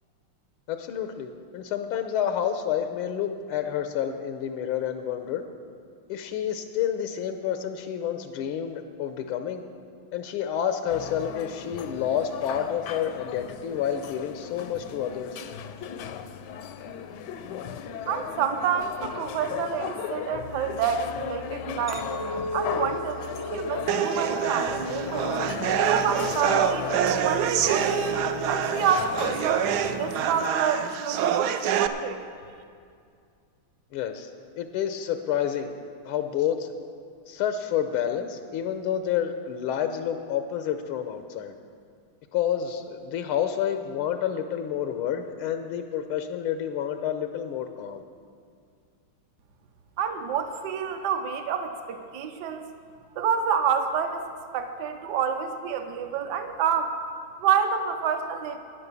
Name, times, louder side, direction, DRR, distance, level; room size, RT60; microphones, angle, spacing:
voice 1, 0.7-5.4 6.1-9.6 10.1-15.4 33.9-34.3 34.6-35.7 36.1-36.7 37.3-41.5 42.3-48.0, left 9 dB, 90° left, 7 dB, 1.6 m, -29 dB
sound 1, 10.9-30.5, left 8 dB, 75° left, 1.0 m, -36 dB
voice 2, 18.1-22.1 22.5-25.3 25.9-28.0 28.5-32.2 50.0-52.7 53.2-56.9 57.4-58.6, right 7 dB, 60° right, 7 dB, 1.3 m, -28 dB
Chink clink, 21.9-26.2 26.7-27.1, left 1 dB, ahead, 0.6 m, -37 dB
sound 2, 23.9-31.9, right 9 dB, 80° right, 0.9 m, -26 dB
11.0 x 9.9 x 6.8 m, 2.3 s
omnidirectional pair, 2.3 m